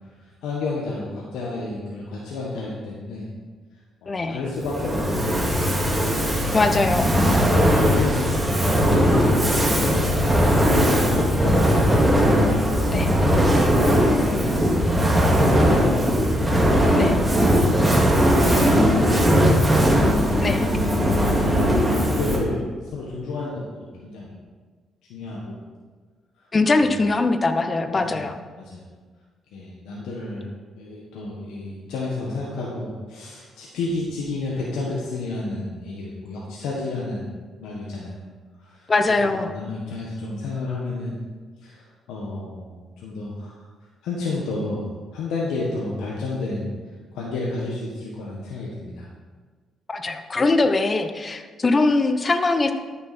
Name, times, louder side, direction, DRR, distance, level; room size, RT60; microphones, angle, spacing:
voice 1, 0.4-3.3 4.0-5.4 6.2-6.8 7.5-12.0 14.2-16.1 17.5-18.0 18.2-19.6 22.0-22.7 22.9-24.4 25.1-25.6 26.8-27.0 27.9-28.3 28.6-28.9 29.5-30.5 30.8-37.3 37.6-38.2 38.6-38.9 39.3-41.2 41.6-43.6 44.0-46.7 47.1-49.1, left 3 dB, 90° left, -4 dB, 1.5 m, -31 dB
voice 2, 4.1-4.4 6.5-7.1 12.9-13.1 16.9-17.2 20.4-20.7 26.5-28.3 38.9-39.5 49.9-52.7, left 3 dB, 30° left, 8 dB, 0.9 m, -21 dB
Fire, 4.6-22.6, equal, 10° right, 2.1 m, -19 dB
12.5 x 7.0 x 4.3 m, 1.5 s
cardioid pair, 90°, 0 cm